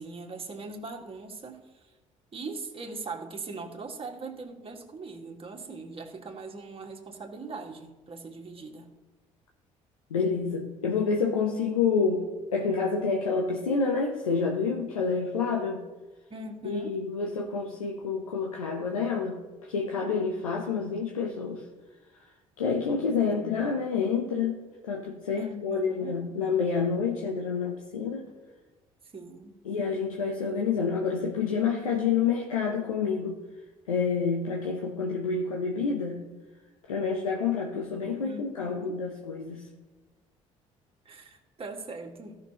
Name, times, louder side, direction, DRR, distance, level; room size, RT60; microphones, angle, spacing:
voice 1, 0.0-1.9 2.3-8.9 16.3-17.0 23.3-23.8 25.4-26.2 29.1-29.5 38.2-39.0 41.1-42.4, right 3 dB, 35° right, 1 dB, 1.8 m, -41 dB
voice 2, 10.1-12.3 12.5-15.8 16.6-21.6 22.6-28.2 29.6-33.4 33.9-36.2 36.9-39.7, left 5 dB, 90° left, 0 dB, 0.8 m, -28 dB
16.5 x 6.1 x 2.9 m, 1.2 s
hypercardioid pair, 50°, 17 cm